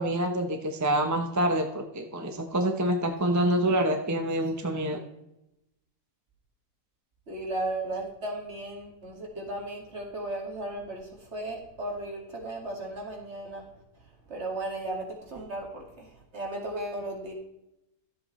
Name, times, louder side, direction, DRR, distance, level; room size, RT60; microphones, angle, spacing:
voice 1, 0.0-5.0, right 1 dB, 15° right, 4 dB, 0.6 m, -26 dB
voice 2, 7.3-13.6 14.3-17.3, right 2 dB, 45° right, -1 dB, 2.4 m, -35 dB
13.0 x 7.8 x 3.2 m, 0.87 s
omnidirectional pair, 1.7 m